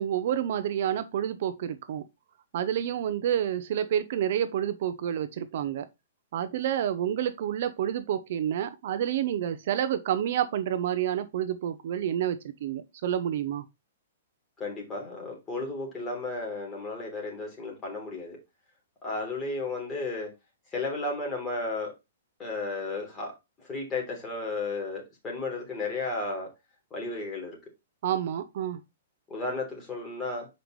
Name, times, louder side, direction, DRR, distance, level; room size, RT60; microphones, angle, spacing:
voice 1, 0.0-2.0 2.5-5.9 6.3-13.6 28.0-28.8, right 10 dB, 55° right, 0.7 m, -29 dB
voice 2, 14.6-18.4 19.0-20.3 20.7-21.9 22.4-23.3 23.6-26.5 26.9-27.6 29.3-30.5, left 3 dB, 15° left, 3.4 m, -33 dB
7.8 x 5.3 x 3.2 m
hypercardioid pair, 160°, 0 cm